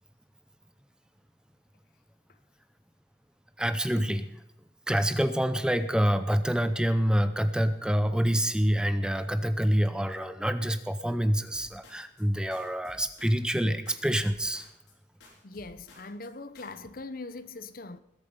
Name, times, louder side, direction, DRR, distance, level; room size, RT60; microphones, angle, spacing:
voice 1, 3.6-4.3 4.9-14.7, equal, 5° right, 0.6 m, -26 dB
sound 1, 11.5-12.3 12.5-13.6 13.9-14.9 15.2-16.3 16.5-16.9, left 1 dB, 75° left, 4.8 m, -55 dB
voice 2, 15.4-18.0, left 3 dB, 50° left, 0.9 m, -41 dB
20.5 x 8.6 x 5.5 m
head